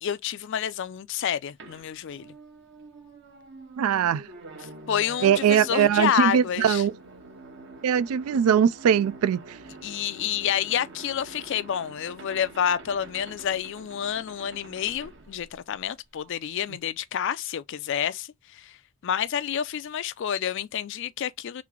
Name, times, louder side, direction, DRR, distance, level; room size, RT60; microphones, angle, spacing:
voice 1, 0.0-2.3 4.9-6.8 9.8-18.8 19.0-21.6, left 9 dB, 55° left, 0.3 m, -29 dB
sound 1, 1.6-16.1, right 2 dB, 50° right, 0.9 m, -46 dB
voice 2, 3.8-4.2 5.2-6.9 7.8-9.6, right 8 dB, 75° right, 0.3 m, -21 dB
3.3 x 3.1 x 3.6 m
head